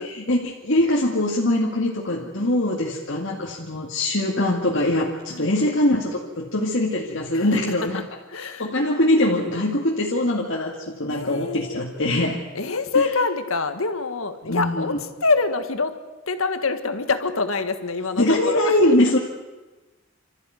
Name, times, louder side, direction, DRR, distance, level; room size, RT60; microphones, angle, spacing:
voice 1, 0.0-8.0 8.3-12.4 14.4-15.0 18.2-19.2, left 1 dB, 60° left, -2 dB, 2.2 m, -22 dB
voice 2, 2.1-2.7 5.3-5.5 7.3-7.5 7.9-8.0 8.3-8.7 11.1-11.8 12.5-15.9 16.3-18.7, left 4 dB, 75° left, 8 dB, 1.7 m, -25 dB
27.0 x 14.0 x 9.4 m, 1.2 s
head